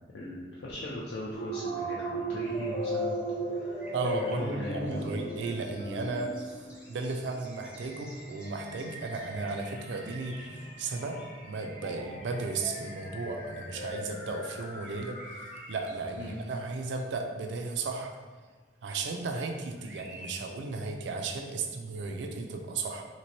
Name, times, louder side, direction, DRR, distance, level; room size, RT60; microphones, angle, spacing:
voice 1, 0.1-3.2 3.5-5.0 16.2-16.4, left 1 dB, 70° left, -5 dB, 0.4 m, -39 dB
sound 1, 1.3-15.9, right 1 dB, 35° left, 0.6 m, -38 dB
sound 2, 2.4-13.8 14.1-18.2 18.8-19.5 19.7-20.3, right 1 dB, 5° right, 0.4 m, -54 dB
voice 2, 3.9-18.1 18.8-23.1, right 3 dB, 80° right, 4 dB, 0.4 m, -35 dB
3.0 x 2.9 x 2.9 m, 1.4 s
head